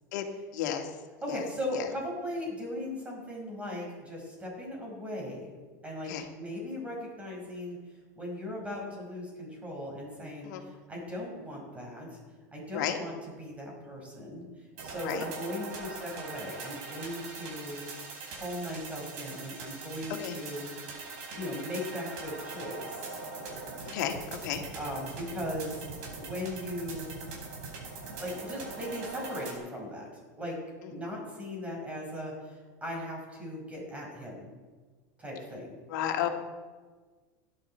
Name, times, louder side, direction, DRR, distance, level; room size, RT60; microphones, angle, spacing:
voice 1, 0.5-0.9 1.3-1.4 1.7-1.9 6.1-6.3 10.4-10.6 12.7-13.0 15.0-15.3 20.2-20.4 23.9-24.6 30.8-30.9 35.9-36.3, left 10 dB, 75° left, 4 dB, 1.9 m, -32 dB
voice 2, 1.2-5.6 5.8-12.2 12.5-17.8 18.3-20.9 21.3-23.2 24.7-25.9 26.1-27.1 28.2-30.1 30.4-30.6 30.9-34.5 35.2-35.8, left 1 dB, 15° right, -2 dB, 5.5 m, -38 dB
sound 1, 14.8-29.5, right 4 dB, 65° right, 4.9 m, -42 dB
17.0 x 11.5 x 4.4 m, 1.4 s
supercardioid pair, 135°, 10 cm